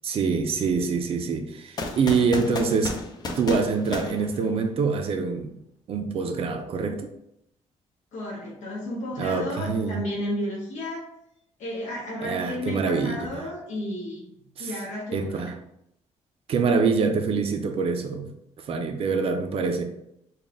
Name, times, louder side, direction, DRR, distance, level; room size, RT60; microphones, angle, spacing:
voice 1, 0.0-3.0 3.4-5.5 5.9-7.1 9.2-10.0 12.2-13.5 14.6-14.7 15.1-15.5 16.5-18.3 18.6-19.8, right 4 dB, 50° right, 5 dB, 0.6 m, -25 dB
sound 1, 1.8-5.0, left 2 dB, 35° left, 0.5 m, -34 dB
voice 2, 8.1-11.1 11.6-15.5, left 1 dB, 80° left, -5 dB, 1.1 m, -33 dB
4.1 x 2.4 x 3.5 m, 0.77 s
cardioid pair, 135°, 12 cm